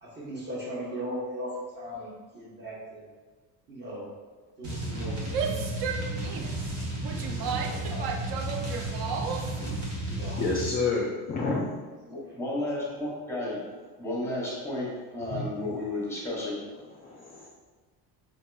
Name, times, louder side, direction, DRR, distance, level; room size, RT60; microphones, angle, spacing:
voice 1, 0.0-3.0 3.7-4.1 4.6-5.7 7.1-8.3 8.6-8.7 10.0-10.5 12.5-13.0, equal, 25° right, -4 dB, 0.9 m, -39 dB
sound 1, 4.6-10.8, right 1 dB, 75° right, 1.3 m, -33 dB
Female speech woman speaking / Yell, 5.2-9.6, right 6 dB, 60° right, 0.5 m, -34 dB
voice 2, 9.2-9.7 10.4-11.6 15.3-15.4 17.0-17.5, left 4 dB, 25° left, -3 dB, 0.3 m, -30 dB
voice 3, 12.1-13.6 14.0-16.6, left 1 dB, 5° left, -5 dB, 0.8 m, -33 dB
5.0 x 2.8 x 2.2 m, 1.3 s
cardioid pair, 135°, 40 cm